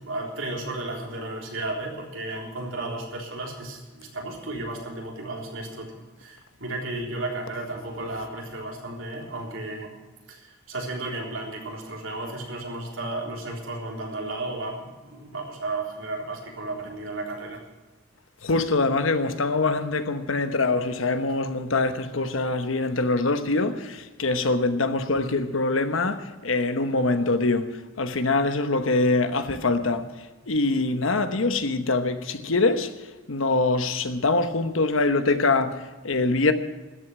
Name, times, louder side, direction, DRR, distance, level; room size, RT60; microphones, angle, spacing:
voice 1, 0.0-5.9 6.2-9.9 10.3-17.6, right 2 dB, 85° right, 3.7 m, -33 dB
voice 2, 18.4-30.1 30.5-32.9 33.3-36.5, left 3 dB, 85° left, 1.1 m, -24 dB
13.5 x 8.1 x 9.9 m
head